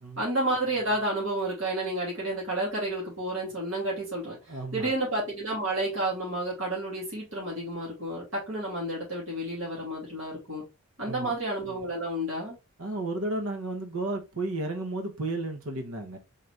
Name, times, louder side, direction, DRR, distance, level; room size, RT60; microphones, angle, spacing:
voice 1, 0.2-10.6 11.0-12.6, right 1 dB, 60° right, 2.7 m, -31 dB
voice 2, 4.5-4.9 11.1-11.3 12.8-16.2, right 2 dB, 80° right, 1.0 m, -33 dB
4.2 x 3.8 x 3.3 m
head